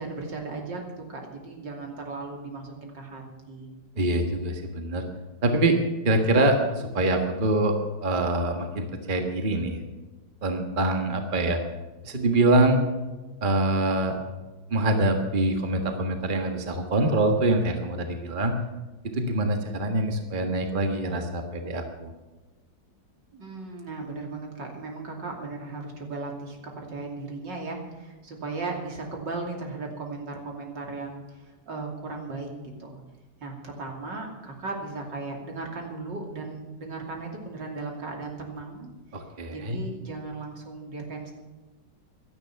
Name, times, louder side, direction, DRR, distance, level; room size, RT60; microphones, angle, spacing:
voice 1, 0.0-3.7 23.3-32.5 32.8-33.0 33.4-38.9 39.5-41.3, right 3 dB, 75° right, 1 dB, 3.5 m, -36 dB
voice 2, 4.0-5.0 5.4-5.8 6.0-7.7 8.0-9.8 10.4-11.6 12.0-12.8 13.4-14.2 14.7-18.6 19.0-22.1 39.1-39.8, right 2 dB, 30° right, 4 dB, 1.6 m, -24 dB
16.0 x 12.5 x 5.9 m, 1.2 s
omnidirectional pair, 2.0 m